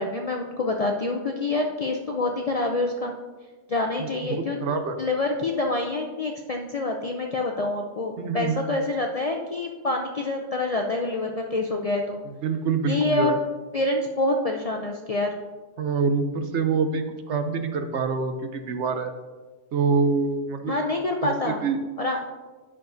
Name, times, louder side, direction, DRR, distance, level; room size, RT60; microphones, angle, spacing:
voice 1, 0.0-3.1 3.7-12.2 12.9-13.3 13.7-15.3 20.7-21.6 22.0-22.2, left 2 dB, 50° left, 1 dB, 0.4 m, -26 dB
voice 2, 4.0-5.0 8.2-8.6 12.4-13.3 15.8-19.1 19.7-20.7 21.2-21.8, right 5 dB, 70° right, 7 dB, 1.0 m, -26 dB
10.5 x 6.2 x 2.6 m, 1.3 s
omnidirectional pair, 1.2 m